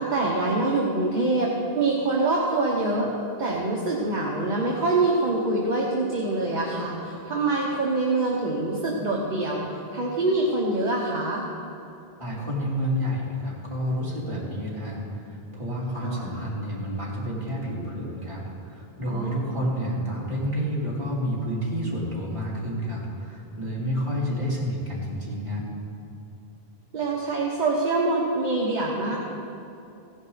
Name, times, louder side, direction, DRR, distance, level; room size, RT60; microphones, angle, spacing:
voice 1, 0.0-3.1 3.4-9.6 9.9-11.4 16.0-16.3 19.1-19.7 26.9-29.2, right 2 dB, 45° right, -3 dB, 1.4 m, -25 dB
voice 2, 12.2-15.0 15.3-25.6, equal, 30° right, -7 dB, 3.2 m, -29 dB
16.5 x 10.5 x 4.0 m, 2.8 s
omnidirectional pair, 1.0 m